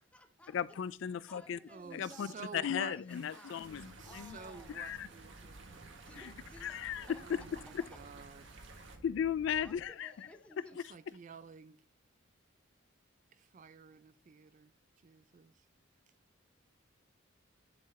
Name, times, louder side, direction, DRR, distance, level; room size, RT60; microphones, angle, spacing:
voice 1, 0.0-0.8 1.3-3.6 4.0-4.9 6.1-7.2 7.8-7.9 9.6-10.8, equal, 5° left, 0.7 m, -57 dB
voice 2, 0.5-1.6 1.9-4.4 4.7-5.1 6.2-6.3 6.6-7.1 9.0-10.1, left 8 dB, 70° left, 0.3 m, -36 dB
voice 3, 1.7-3.0 4.0-6.0 7.2-8.6 10.9-11.8 13.3-14.7 15.0-15.7, right 5 dB, 40° right, 0.3 m, -51 dB
sound 1, 3.1-9.0, right 4 dB, 70° right, 1.3 m, -56 dB
sound 2, 3.6-9.8, right 1 dB, 85° right, 1.4 m, -55 dB
10.0 x 3.9 x 4.2 m
head